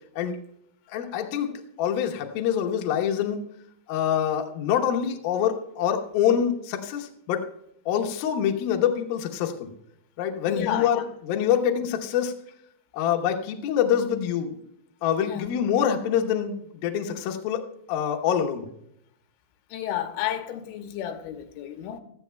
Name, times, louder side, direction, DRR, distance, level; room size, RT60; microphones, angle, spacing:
voice 1, 0.9-3.4 3.9-7.5 7.9-9.7 10.2-12.4 12.9-14.6 15.0-17.6 17.9-18.7, left 9 dB, 70° left, 2.4 m, -25 dB
voice 2, 10.5-11.1 15.2-15.5 19.7-22.0, left 11 dB, 90° left, 3.3 m, -32 dB
16.5 x 13.5 x 2.3 m
omnidirectional pair, 5.4 m